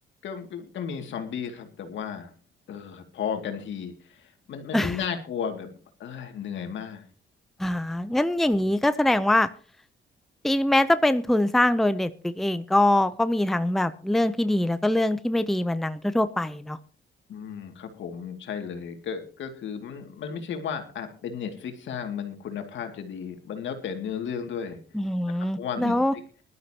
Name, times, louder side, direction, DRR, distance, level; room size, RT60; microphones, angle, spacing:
voice 1, 0.2-2.3 2.7-5.7 6.0-7.1 17.3-24.8 25.4-26.2, left 7 dB, 70° left, 5 dB, 2.5 m, -34 dB
voice 2, 7.6-9.5 10.4-16.8 24.9-26.1, left 1 dB, ahead, 12 dB, 0.6 m, -23 dB
20.0 x 12.0 x 2.9 m, 0.39 s
cardioid pair, 90°, 20 cm